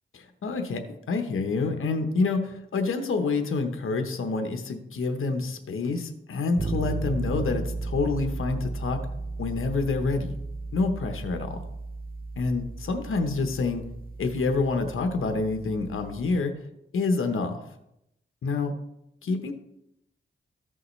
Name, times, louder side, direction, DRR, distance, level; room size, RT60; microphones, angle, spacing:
voice 1, 0.1-9.0 9.4-10.4 10.7-11.6 12.4-13.8 14.2-16.5 16.9-17.6 18.4-18.7 19.2-19.5, left 3 dB, 80° left, 5 dB, 1.0 m, -27 dB
sound 1, 6.6-16.4, right 3 dB, 45° right, 0.7 m, -35 dB
14.0 x 5.6 x 3.2 m, 0.83 s
cardioid pair, 60°, 21 cm